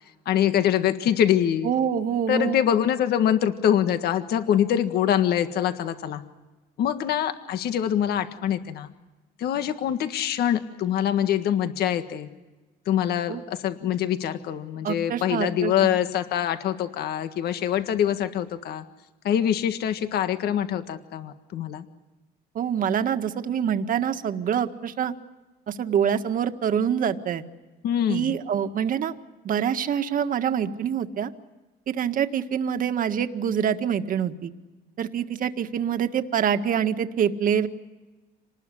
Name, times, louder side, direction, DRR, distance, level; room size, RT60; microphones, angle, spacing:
voice 1, 0.2-1.7 2.3-6.2 6.8-8.9 9.4-12.3 12.8-18.8 19.2-21.8 27.8-28.4, left 10 dB, 70° left, 9 dB, 1.7 m, -24 dB
voice 2, 1.6-2.6 13.3-13.4 14.8-15.9 22.6-25.1 25.7-27.4 28.1-29.1 29.4-31.3 31.9-34.5 35.0-37.7, right 8 dB, 55° right, 8 dB, 1.8 m, -25 dB
27.0 x 20.0 x 10.0 m, 1.2 s
cardioid pair, 110°, 17 cm